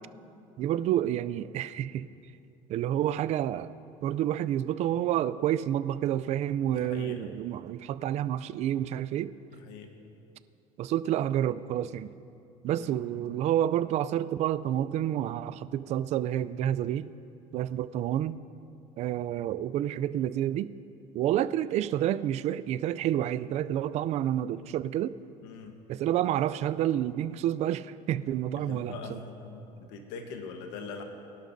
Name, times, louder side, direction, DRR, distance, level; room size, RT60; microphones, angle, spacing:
voice 1, 0.6-2.1 2.7-3.7 4.0-9.3 10.8-12.1 12.6-17.1 17.5-18.4 19.0-20.7 21.1-25.2 25.9-29.2, right 11 dB, 45° right, 16 dB, 0.4 m, -29 dB
voice 2, 6.7-7.3 9.5-9.9 12.7-13.0 25.4-25.7 28.6-31.0, left 4 dB, 85° left, 4 dB, 1.2 m, -42 dB
23.0 x 11.5 x 2.7 m, 2.7 s
cardioid pair, 135°, 15 cm